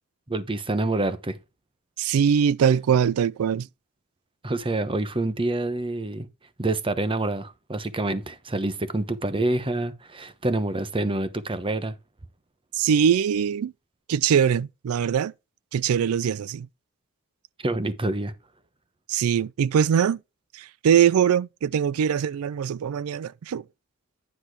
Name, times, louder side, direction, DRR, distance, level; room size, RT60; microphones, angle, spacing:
voice 1, 0.3-1.4 4.4-6.3 6.6-11.9 17.6-18.3, right 2 dB, 25° right, 0.9 m, -27 dB
voice 2, 2.0-3.7 12.7-13.7 14.1-15.3 15.7-16.7 19.1-20.2 20.5-23.6, right 8 dB, 70° right, 0.3 m, -22 dB
10.0 x 4.3 x 4.7 m
head